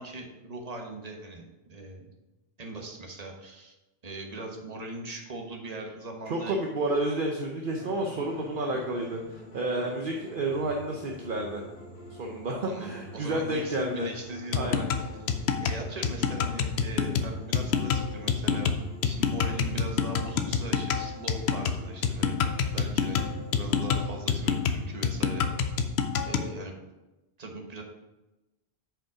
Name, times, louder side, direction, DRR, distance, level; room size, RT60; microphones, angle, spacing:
voice 1, 0.0-1.4 1.7-2.1 2.6-3.8 4.0-6.6 12.5-14.9 15.6-18.7 19.0-25.8 26.2-26.7 27.4-27.8, right 2 dB, 40° right, 1 dB, 1.3 m, -40 dB
voice 2, 6.3-11.6 12.2-14.1 14.5-14.9, right 1 dB, 55° right, 1 dB, 1.0 m, -30 dB
sound 1, 7.7-25.3, left 1 dB, 60° left, 1.4 m, -46 dB
sound 2, 14.5-26.5, left 6 dB, 80° left, 0.9 m, -27 dB
7.6 x 5.4 x 4.8 m, 1.0 s
omnidirectional pair, 1.1 m